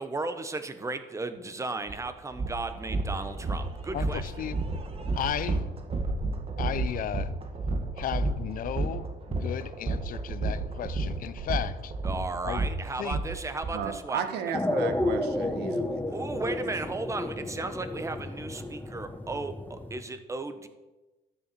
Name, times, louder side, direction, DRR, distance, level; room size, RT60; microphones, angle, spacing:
voice 1, 0.0-4.2 12.0-14.2 16.1-20.7, right 3 dB, 20° right, 1.1 m, -35 dB
sound 1, 1.9-2.0 2.3-13.7, right 2 dB, 35° right, 1.7 m, -31 dB
voice 2, 3.9-4.6 5.2-5.6 6.6-7.3 8.0-11.9 12.4-12.6 13.0-13.2, left 11 dB, 55° left, 0.6 m, -34 dB
voice 3, 13.7-16.5, right 7 dB, 80° right, 1.4 m, -35 dB
sound 2, 14.5-20.0, left 1 dB, 10° left, 1.1 m, -32 dB
13.5 x 7.0 x 6.9 m
cardioid pair, 110°, 17 cm